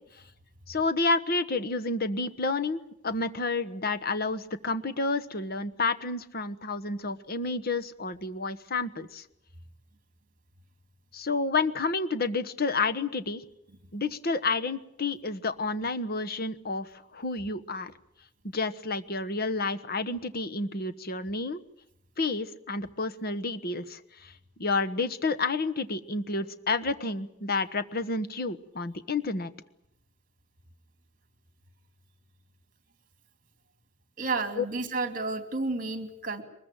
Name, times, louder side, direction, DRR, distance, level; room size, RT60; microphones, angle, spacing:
voice 1, 0.7-9.2 11.1-13.4 13.9-16.9 17.1-17.9 18.4-21.6 22.2-24.3 24.6-29.5 34.6-34.7, left 3 dB, 45° left, 11 dB, 1.3 m, -30 dB
voice 2, 34.2-36.4, right 3 dB, 40° right, 8 dB, 2.9 m, -31 dB
23.0 x 21.0 x 9.0 m, 0.77 s
head